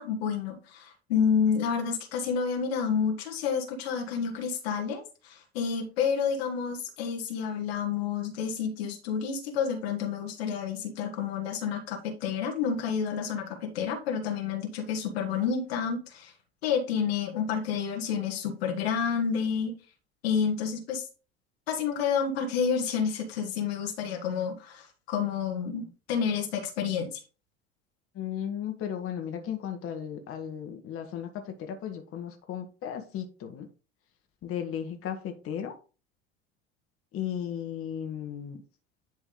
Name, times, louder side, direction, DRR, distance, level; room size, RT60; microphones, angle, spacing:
voice 1, 0.0-16.3 16.6-19.7 20.2-21.0 21.7-27.2, left 6 dB, 70° left, 1.6 m, -29 dB
voice 2, 28.1-33.7 34.4-35.7 37.1-38.6, left 9 dB, 45° left, 1.4 m, -35 dB
10.5 x 3.5 x 3.9 m
hypercardioid pair, 70°, 32 cm